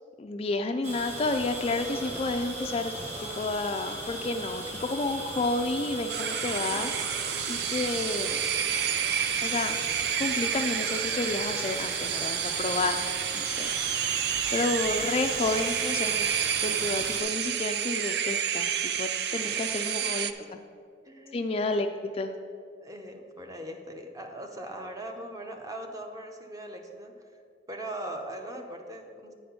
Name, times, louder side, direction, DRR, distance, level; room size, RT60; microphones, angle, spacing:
voice 1, 0.2-2.9 3.2-6.9 7.5-8.4 9.4-9.8 10.2-13.0 13.3-13.7 14.5-16.3 16.6-20.3 21.3-22.3, left 2 dB, 30° left, 6 dB, 0.3 m, -30 dB
sound 1, 0.8-17.2, right 1 dB, 40° right, 1.8 m, -38 dB
sound 2, 6.1-20.3, right 9 dB, 60° right, 0.4 m, -30 dB
voice 2, 19.3-19.9 20.4-20.5 21.0-21.4 22.8-27.1 27.7-29.3, right 1 dB, 20° right, 3 dB, 0.7 m, -40 dB
9.3 x 4.2 x 6.8 m, 2.3 s
head